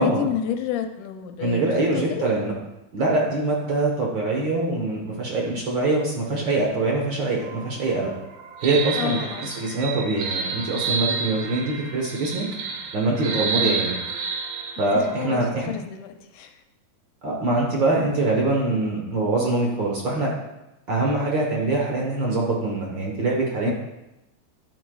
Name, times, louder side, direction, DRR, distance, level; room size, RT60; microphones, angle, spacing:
voice 1, 0.0-2.3 9.0-9.5 13.5-13.8 14.8-15.4 15.7-16.6 23.6-23.7, left 9 dB, 80° left, 6 dB, 2.1 m, -30 dB
voice 2, 1.4-2.5 2.9-8.1 8.6-12.5 12.9-13.9 14.8-15.7 17.2-20.3 20.9-23.7, right 2 dB, 60° right, -2 dB, 1.3 m, -24 dB
sound 1, 7.4-15.3, right 5 dB, 80° right, 2.4 m, -30 dB
11.5 x 8.0 x 2.3 m, 0.93 s
omnidirectional pair, 3.7 m